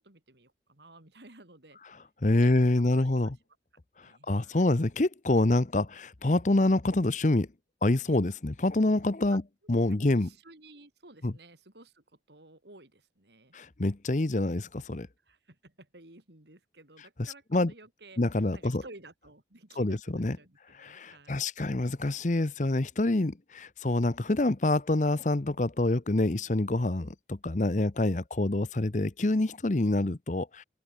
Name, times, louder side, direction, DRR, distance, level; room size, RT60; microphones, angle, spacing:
voice 1, 0.0-2.0 2.3-3.3 4.0-4.7 9.3-9.4 9.9-13.5 15.2-21.5, right 2 dB, 70° right, 3.8 m, -54 dB
voice 2, 2.2-3.4 4.3-7.5 7.8-9.4 9.7-10.3 11.2-11.3 13.5-15.1 17.2-17.7 18.2-18.8 19.8-20.4 20.8-30.6, left 2 dB, 40° left, 0.8 m, -26 dB
open air
head